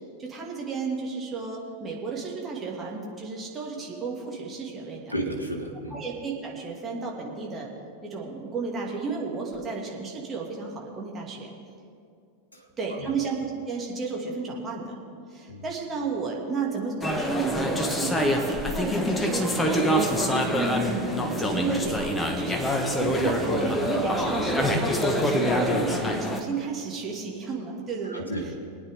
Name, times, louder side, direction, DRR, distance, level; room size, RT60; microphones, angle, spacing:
voice 1, 0.2-5.1 5.9-7.7 8.0-11.5 12.8-15.0 15.3-19.5 20.5-28.5, right 4 dB, 20° right, -2 dB, 2.6 m, -33 dB
voice 2, 5.1-6.0 12.5-12.6 15.5-15.6 28.0-28.5, right 1 dB, 80° left, 0 dB, 1.6 m, -32 dB
sound 1, 17.0-26.4, equal, 10° left, 1.3 m, -25 dB
23.0 x 9.3 x 3.8 m, 2.4 s
figure-of-eight pair, 90°, 0 cm